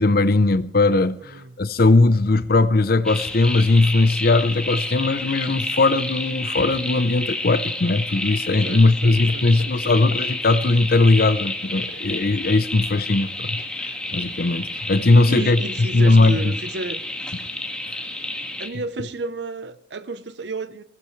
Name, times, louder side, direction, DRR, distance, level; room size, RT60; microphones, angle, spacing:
voice 1, 0.0-13.6 14.1-16.4, left 2 dB, 60° left, 0.7 m, -19 dB
sound 1, 3.0-18.7, left 1 dB, 5° left, 1.9 m, -30 dB
voice 2, 8.6-9.9 15.3-17.0 18.6-20.8, right 3 dB, 75° right, 0.8 m, -32 dB
22.5 x 15.5 x 3.2 m
head